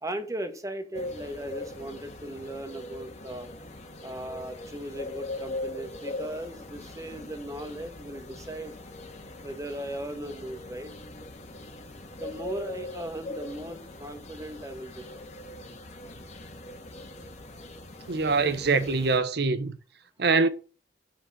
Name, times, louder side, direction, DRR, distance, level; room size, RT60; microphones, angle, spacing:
voice 1, 0.0-3.5 4.0-8.7 9.4-10.9 12.1-15.3, right 1 dB, 20° right, 1.4 m, -38 dB
sound 1, 0.9-19.2, left 2 dB, 40° left, 1.7 m, -41 dB
voice 2, 18.1-19.8 20.2-20.5, right 4 dB, 65° right, 1.0 m, -24 dB
6.4 x 6.3 x 7.4 m
head